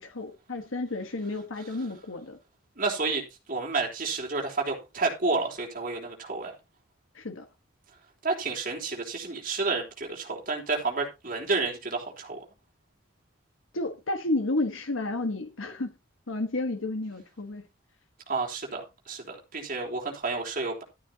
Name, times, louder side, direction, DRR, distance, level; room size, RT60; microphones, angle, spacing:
voice 1, 0.0-2.4 7.1-7.4 13.7-15.9 16.3-17.6, left 2 dB, 85° left, 1.4 m, -31 dB
voice 2, 2.8-3.2 3.5-6.5 8.2-12.4 18.3-18.8 19.1-20.8, right 3 dB, 45° right, 3.5 m, -30 dB
12.5 x 11.5 x 2.9 m
head